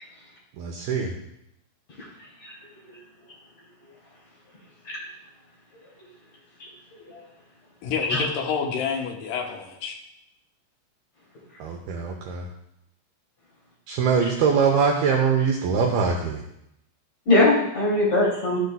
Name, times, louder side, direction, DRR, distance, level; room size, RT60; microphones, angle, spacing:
voice 1, 0.6-1.1 11.6-12.5 13.9-16.4, right 6 dB, 85° right, 1 dB, 2.1 m, -23 dB
voice 2, 7.8-10.0, left 6 dB, 75° left, 1 dB, 2.0 m, -28 dB
voice 3, 17.3-18.6, left 2 dB, 40° left, -6 dB, 3.5 m, -21 dB
13.5 x 8.0 x 2.3 m, 0.82 s
omnidirectional pair, 5.3 m